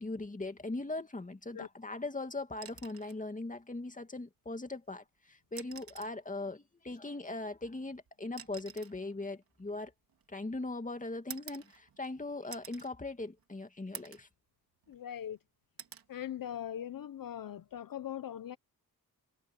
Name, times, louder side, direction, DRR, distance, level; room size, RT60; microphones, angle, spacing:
voice 1, 0.0-9.9 10.3-14.3, left 2 dB, 20° left, 2.4 m, -40 dB
sound 1, 2.6-3.2 4.7-4.8 5.4-6.2 7.4-10.5 11.3-12.1 12.5-12.9 13.4-13.5 13.9-14.3 14.8-15.4 15.8-16.1 17.6-17.8, right 8 dB, 70° right, 2.5 m, -50 dB
voice 2, 14.9-15.4 16.1-18.6, left 10 dB, 65° left, 0.8 m, -40 dB
cardioid pair, 75°, 37 cm